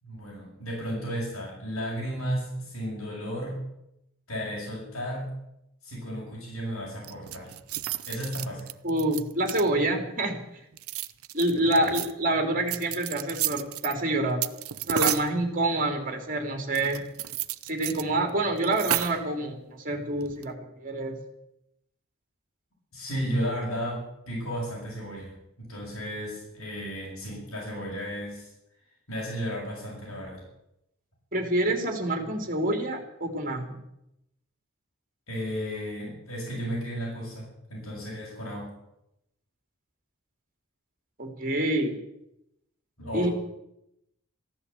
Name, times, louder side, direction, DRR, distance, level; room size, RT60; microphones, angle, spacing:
voice 1, 0.0-3.6 4.3-5.3 5.8-7.5 8.1-8.7 11.6-12.0 22.9-28.5 29.1-30.4 35.3-38.7 43.0-43.3, equal, 80° left, -5 dB, 6.8 m, -34 dB
sound 1, 7.0-9.9 10.7-12.1 12.7-13.9 14.4-15.3 16.7-18.0 18.3-18.4 18.6-19.3 20.2-20.5, right 13 dB, 85° right, 0.6 m, -32 dB
voice 2, 8.8-10.4 11.3-14.4 14.9-17.0 17.6-21.2 31.3-33.8 41.2-42.0 43.1-43.3, right 1 dB, 40° right, 4 dB, 3.0 m, -27 dB
15.0 x 11.0 x 8.3 m, 0.84 s
head